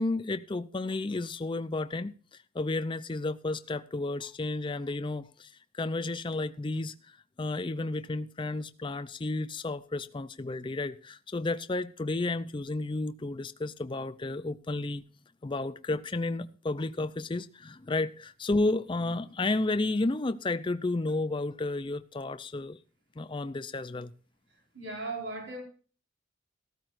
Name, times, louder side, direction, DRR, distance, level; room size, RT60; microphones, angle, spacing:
voice 1, 0.0-2.1 2.5-15.0 15.4-22.8 23.2-24.1, left 2 dB, 25° left, 0.5 m, -32 dB
voice 2, 24.7-25.6, right 2 dB, 80° right, 4.4 m, -37 dB
14.5 x 13.0 x 2.6 m
head